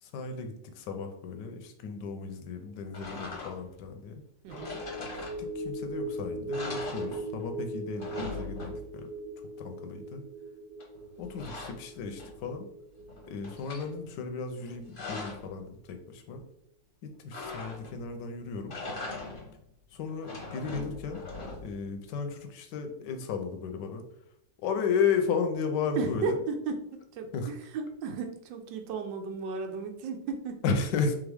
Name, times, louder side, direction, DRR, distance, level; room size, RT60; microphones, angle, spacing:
voice 1, 0.0-4.2 5.1-9.1 9.6-10.2 11.2-12.7 13.3-16.4 17.0-18.7 19.9-21.2 21.6-24.0 24.6-26.4 27.3-27.5 30.6-31.2, left 5 dB, 80° left, 6 dB, 1.2 m, -34 dB
sound 1, 2.9-3.8 4.5-5.8 6.1-6.2 6.5-7.6 7.8-9.1 10.8-12.6 13.0-13.9 14.6-15.5 17.3-18.1 18.6-19.6 20.1-21.9, left 3 dB, 40° left, 0.8 m, -41 dB
voice 2, 4.4-4.8 26.0-30.6, right 4 dB, 85° right, 5 dB, 1.4 m, -34 dB
sound 2, 4.5-15.1 15.4-15.6, right 1 dB, 65° right, 1.1 m, -40 dB
3.6 x 3.6 x 3.4 m, 0.74 s
omnidirectional pair, 1.9 m